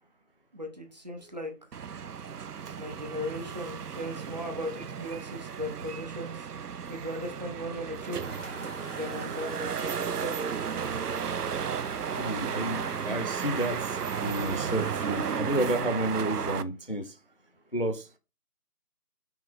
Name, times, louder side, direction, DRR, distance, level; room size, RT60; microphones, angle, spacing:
voice 1, 0.5-1.5 2.8-6.5 6.9-8.2 8.9-10.5, equal, 30° right, 1.0 m, -37 dB
sound 1, 1.7-16.6, right 7 dB, 80° right, 0.7 m, -34 dB
sound 2, 8.2-15.4, right 3 dB, 50° right, 1.8 m, -43 dB
voice 2, 12.1-17.2 17.7-18.2, right 1 dB, 40° left, 0.5 m, -31 dB
6.0 x 3.3 x 5.1 m
figure-of-eight pair, 170°, 46 cm